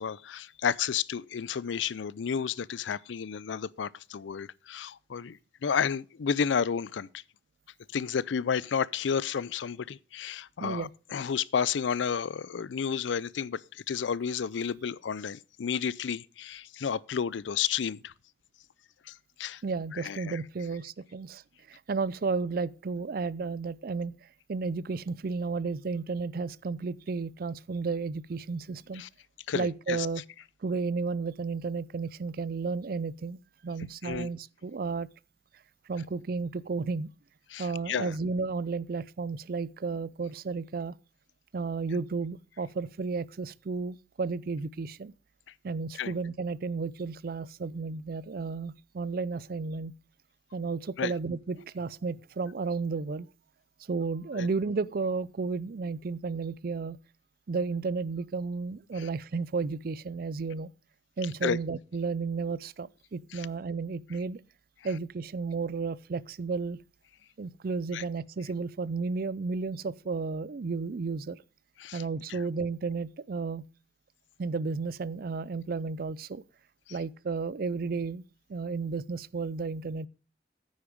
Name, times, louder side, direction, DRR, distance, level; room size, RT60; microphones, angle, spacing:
voice 1, 0.0-7.2 7.9-18.1 19.1-19.6 19.9-20.4 28.9-29.1 29.5-30.1 34.0-34.3 37.5-38.1 46.0-46.1 51.0-51.1 54.3-54.5 59.0-59.1 61.4-61.6 63.3-63.5 67.9-68.0 71.8-72.0 72.3-72.4, left 7 dB, 90° left, 0.4 m, -31 dB
voice 2, 19.6-21.4 21.7-24.2 24.5-29.0 29.5-30.2 30.6-35.1 35.9-37.1 37.6-41.0 41.5-45.1 45.6-49.9 50.5-53.3 53.9-57.0 57.5-60.7 61.2-64.4 64.8-66.8 67.4-71.4 71.9-73.6 74.4-76.4 76.9-78.2 78.5-80.1, right 4 dB, 50° right, 0.4 m, -33 dB
9.5 x 8.7 x 5.1 m
head